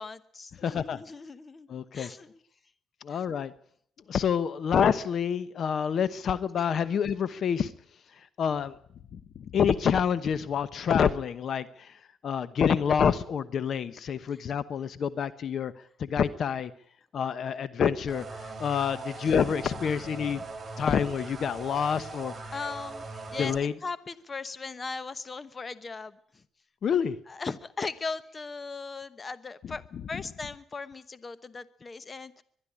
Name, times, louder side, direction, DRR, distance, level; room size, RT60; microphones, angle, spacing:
voice 1, 0.0-1.7 1.9-2.4 3.1-3.2 22.5-23.5 23.8-26.4 27.3-29.8 30.1-32.4, left 4 dB, 30° left, 1.0 m, -38 dB
voice 2, 0.6-1.0 1.7-2.1 3.0-3.5 4.1-7.7 8.4-8.8 9.1-15.7 16.0-16.7 17.1-20.4 20.8-22.5 23.4-23.7 26.8-27.2 30.1-30.2, left 7 dB, 60° left, 1.0 m, -27 dB
sound 1, 18.1-23.6, right 3 dB, 25° right, 4.3 m, -40 dB
22.5 x 12.0 x 9.9 m
cardioid pair, 90°, 0 cm